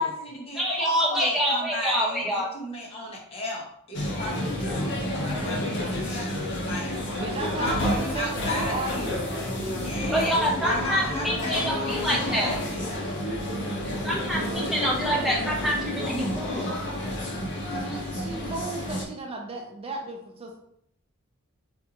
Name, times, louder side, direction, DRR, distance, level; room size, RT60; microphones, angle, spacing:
voice 1, 0.0-7.0 7.6-9.1 9.7-12.9, left 1 dB, 25° left, -2 dB, 0.9 m, -34 dB
voice 2, 0.6-2.5 10.1-12.5 14.0-16.7, equal, ahead, -4 dB, 0.8 m, -26 dB
sound 1, 3.9-19.0, left 1 dB, 55° left, 0.7 m, -30 dB
voice 3, 7.1-11.3 14.3-14.6 17.7-20.6, right 2 dB, 25° right, 1 dB, 0.4 m, -36 dB
4.3 x 2.4 x 2.8 m, 0.71 s
head